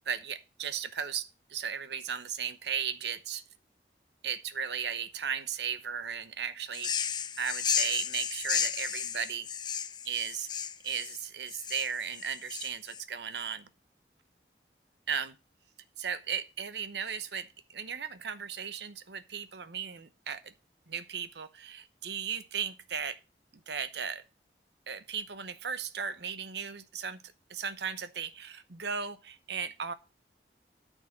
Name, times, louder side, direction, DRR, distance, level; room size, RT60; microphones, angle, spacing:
voice 1, 0.1-3.4 4.2-9.5 10.0-13.7 15.1-15.4 16.0-20.5 20.9-23.2 23.7-24.2 24.9-27.2 27.5-29.9, right 7 dB, 80° right, 0.9 m, -36 dB
sound 1, 6.7-13.0, left 8 dB, 25° left, 0.5 m, -33 dB
9.6 x 5.5 x 7.3 m
head